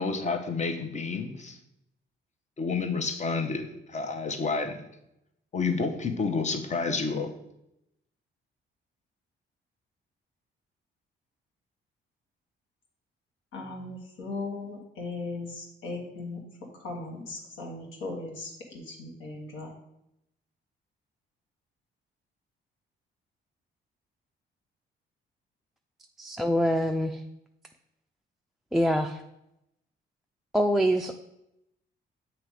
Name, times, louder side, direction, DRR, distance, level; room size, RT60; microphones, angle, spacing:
voice 1, 0.0-1.6 2.6-4.9 5.5-7.3, left 4 dB, 35° left, 7 dB, 0.8 m, -30 dB
voice 2, 13.5-16.4 16.7-19.7, left 3 dB, 85° left, 0 dB, 1.5 m, -38 dB
voice 3, 26.2-27.2 28.7-29.2 30.5-31.1, equal, ahead, 6 dB, 0.3 m, -25 dB
7.3 x 3.0 x 4.7 m, 0.84 s
cardioid pair, 90°, 20 cm